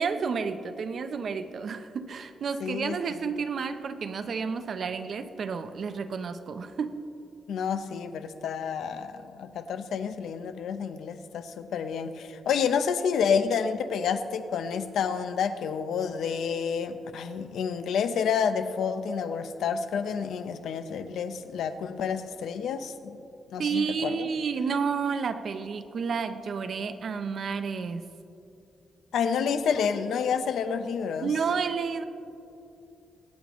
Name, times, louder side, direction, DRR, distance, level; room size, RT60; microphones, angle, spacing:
voice 1, 0.0-7.0 23.6-28.1 31.2-32.0, right 5 dB, 50° right, 10 dB, 0.6 m, -31 dB
voice 2, 2.6-3.4 7.5-23.2 23.5-24.3 29.1-31.3, left 6 dB, 85° left, 9 dB, 0.7 m, -29 dB
24.5 x 8.5 x 3.1 m, 2.6 s
wide cardioid pair, 145°, 0 cm